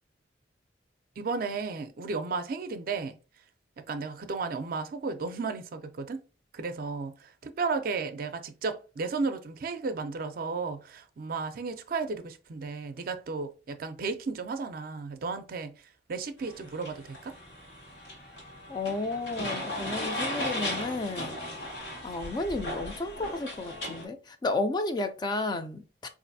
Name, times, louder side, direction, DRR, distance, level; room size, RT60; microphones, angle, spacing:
voice 1, 1.2-3.2 3.8-6.2 6.5-15.7 16.1-17.4, right 4 dB, 55° right, 0.4 m, -34 dB
sound 1, 16.4-24.0, left 1 dB, 90° left, 1.2 m, -37 dB
voice 2, 18.7-21.4 22.0-26.1, left 2 dB, 25° left, 0.3 m, -32 dB
3.9 x 2.5 x 2.6 m
head